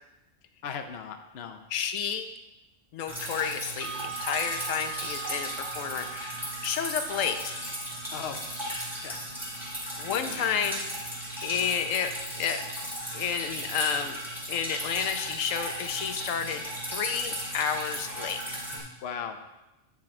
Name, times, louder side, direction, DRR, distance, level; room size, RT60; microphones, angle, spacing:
voice 1, 0.6-1.6 8.1-8.4 9.0-9.2 10.1-10.5 19.0-19.4, left 7 dB, 60° left, 6 dB, 0.9 m, -37 dB
voice 2, 1.7-2.3 2.9-7.5 10.0-10.8 11.4-12.6 13.1-14.2 14.5-18.4, left 7 dB, 90° left, 7 dB, 1.1 m, -31 dB
Drip, 3.1-18.8, equal, ahead, 2.7 m, -36 dB
sound 1, 3.8-11.8, right 10 dB, 60° right, 0.3 m, -44 dB
8.9 x 6.1 x 4.3 m, 0.98 s
omnidirectional pair, 1.3 m